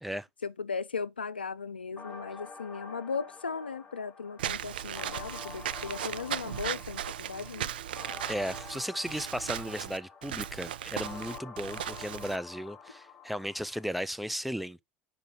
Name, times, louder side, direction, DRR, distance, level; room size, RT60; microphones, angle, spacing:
voice 1, 0.4-7.7, left 5 dB, 85° left, 0.4 m, -37 dB
sound 1, 2.0-14.0, left 5 dB, 30° left, 1.1 m, -48 dB
Walk footsteps / Squeak, 4.4-12.4, right 11 dB, 70° right, 0.4 m, -37 dB
voice 2, 8.3-14.8, equal, ahead, 0.5 m, -35 dB
6.6 x 5.0 x 3.8 m
figure-of-eight pair, 70°, 5 cm